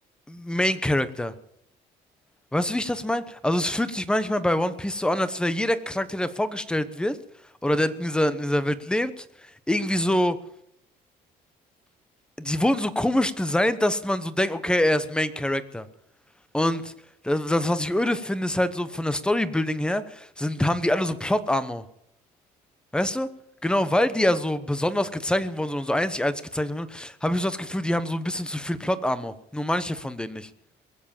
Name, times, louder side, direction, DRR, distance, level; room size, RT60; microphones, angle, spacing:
voice 1, 0.3-1.3 2.5-7.2 7.6-9.3 9.7-10.4 12.4-15.9 16.5-16.9 17.2-21.8 22.9-23.3 23.6-30.5, left 1 dB, 5° left, 13 dB, 1.0 m, -25 dB
22.5 x 7.4 x 7.3 m, 0.75 s
cardioid pair, 110°, 17 cm